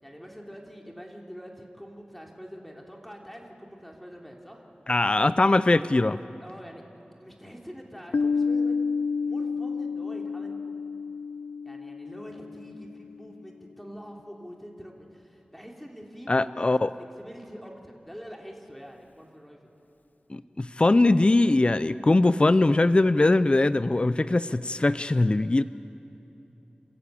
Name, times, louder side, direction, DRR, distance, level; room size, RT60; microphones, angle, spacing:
voice 1, 0.0-4.6 6.4-6.8 7.2-8.9 9.2-10.6 11.6-19.7, equal, 5° left, 0 dB, 3.2 m, -45 dB
voice 2, 4.9-6.2 16.3-16.9 20.3-25.6, left 2 dB, 35° left, 14 dB, 0.5 m, -21 dB
Piano, 8.1-13.5, left 5 dB, 85° left, 0.6 m, -30 dB
27.0 x 15.5 x 8.4 m, 3.0 s
wide cardioid pair, 55°, 3 cm